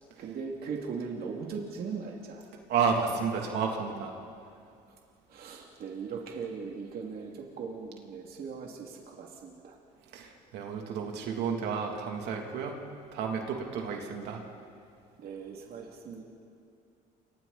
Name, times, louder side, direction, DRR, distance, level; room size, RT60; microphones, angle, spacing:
voice 1, 0.2-2.4 5.3-9.8 15.2-16.2, right 5 dB, 65° right, 0 dB, 2.7 m, -39 dB
voice 2, 2.7-4.1 10.1-14.4, right 6 dB, 80° right, 1 dB, 3.1 m, -31 dB
29.5 x 25.5 x 4.3 m, 2.5 s
cardioid pair, 110°, 17 cm